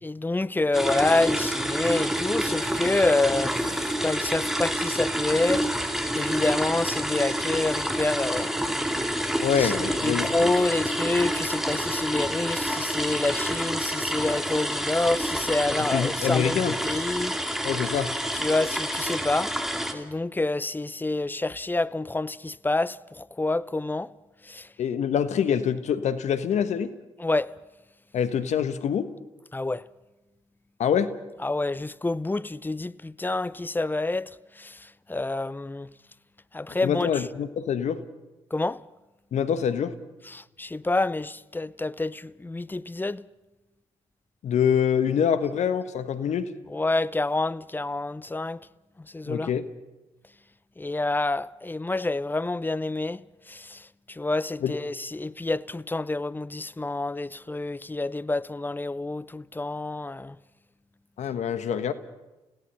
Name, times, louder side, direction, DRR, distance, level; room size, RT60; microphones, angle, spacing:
voice 1, 0.0-5.7 6.1-8.5 9.6-9.7 10.0-17.4 18.3-19.6 19.9-24.1 24.4-24.7 27.2-27.5 29.5-29.8 31.4-35.9 36.5-37.2 38.5-38.8 40.3-43.3 46.7-48.6 49.0-49.5 50.8-60.4, left 2 dB, 15° left, 0.6 m, -28 dB
sound 1, 0.7-19.9, equal, 5° right, 2.7 m, -28 dB
voice 2, 9.4-10.5 15.9-16.7 17.6-18.1 24.8-26.9 28.1-29.1 30.8-31.1 36.8-38.0 39.3-39.9 44.4-46.5 49.3-49.6 54.6-54.7 61.2-61.9, left 8 dB, 60° left, 1.3 m, -25 dB
29.5 x 16.5 x 5.6 m
hypercardioid pair, 45°, 13 cm